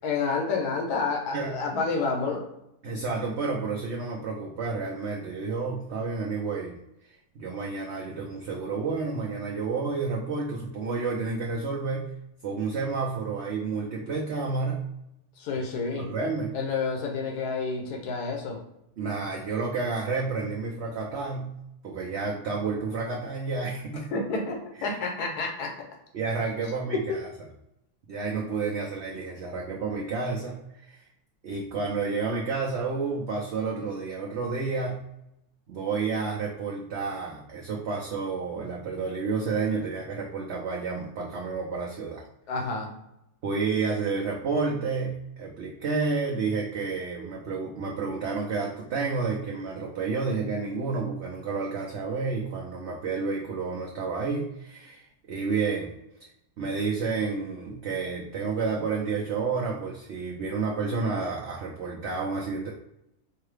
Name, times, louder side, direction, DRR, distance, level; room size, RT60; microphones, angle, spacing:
voice 1, 0.0-2.5 15.4-16.1 16.5-18.6 24.1-25.7 26.9-27.1 42.5-42.9, left 4 dB, 80° left, 1 dB, 1.3 m, -29 dB
voice 2, 1.3-1.6 2.8-6.8 7.3-12.1 12.4-14.8 16.0-16.6 19.0-21.6 21.8-24.1 24.8-25.0 26.1-27.3 28.1-31.0 31.4-34.9 35.7-42.2 43.4-55.0 55.3-55.9 56.6-62.7, right 4 dB, 60° right, -2 dB, 0.8 m, -30 dB
4.6 x 2.2 x 3.3 m, 0.82 s
omnidirectional pair, 1.7 m